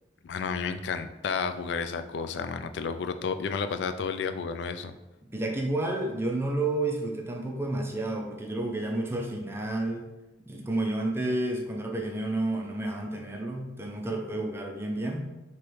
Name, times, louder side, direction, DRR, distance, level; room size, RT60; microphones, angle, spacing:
voice 1, 0.2-4.9, left 5 dB, 65° left, 9 dB, 0.3 m, -31 dB
voice 2, 5.3-10.1 10.5-15.3, right 2 dB, 15° right, 1 dB, 0.5 m, -30 dB
3.2 x 3.0 x 4.6 m, 1.0 s
head